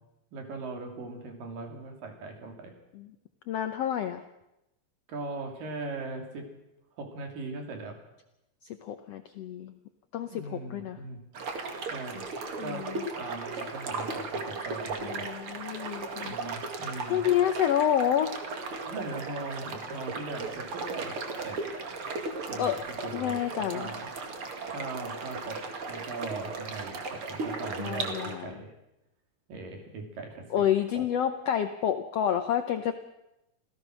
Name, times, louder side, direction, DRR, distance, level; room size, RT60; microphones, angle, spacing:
voice 1, 0.3-2.7 5.1-6.5 7.0-8.0 10.3-11.2 11.9-12.3 12.6-12.9 13.2-15.3 16.2-17.2 18.9-21.2 21.4-21.6 22.5-24.0 24.7-28.7 29.5-30.7 30.9-31.1, right 3 dB, 80° right, 3 dB, 4.6 m, -39 dB
voice 2, 3.5-4.2 8.6-9.7 10.1-11.0 12.6-13.0 15.0-16.3 17.1-18.4 22.6-22.8 23.1-23.9 27.8-28.5 30.5-32.9, left 10 dB, 75° left, 8 dB, 1.4 m, -29 dB
sound 1, 11.3-28.4, right 3 dB, 45° right, 2.5 m, -36 dB
27.0 x 16.0 x 6.3 m, 0.90 s
omnidirectional pair, 3.9 m